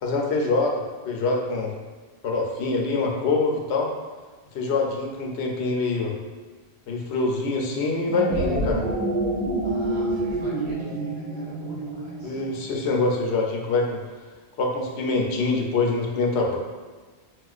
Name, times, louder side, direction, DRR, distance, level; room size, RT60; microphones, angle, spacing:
voice 1, 0.0-1.7 2.2-3.9 4.5-6.1 6.9-8.8 12.2-14.0 14.6-16.6, left 3 dB, 85° left, 0 dB, 0.9 m, -25 dB
sound 1, 8.0-12.5, right 1 dB, 90° right, 0.9 m, -27 dB
voice 2, 9.6-12.4, right 1 dB, 50° right, -7 dB, 1.0 m, -45 dB
4.1 x 2.4 x 2.4 m, 1.4 s
omnidirectional pair, 1.1 m